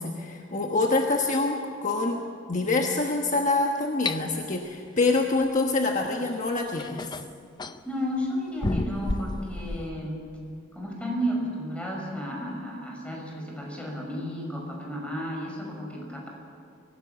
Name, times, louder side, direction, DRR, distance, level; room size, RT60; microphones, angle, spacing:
voice 1, 0.0-2.2 2.5-7.1, left 3 dB, 40° left, 2 dB, 1.3 m, -26 dB
sound 1, 4.0-4.2 6.1-6.2 6.8-7.8 8.6-9.9, left 2 dB, 20° left, 0.6 m, -31 dB
voice 2, 7.8-10.2 10.7-16.3, equal, 5° left, -2 dB, 5.6 m, -32 dB
24.0 x 16.5 x 7.0 m, 2.4 s
head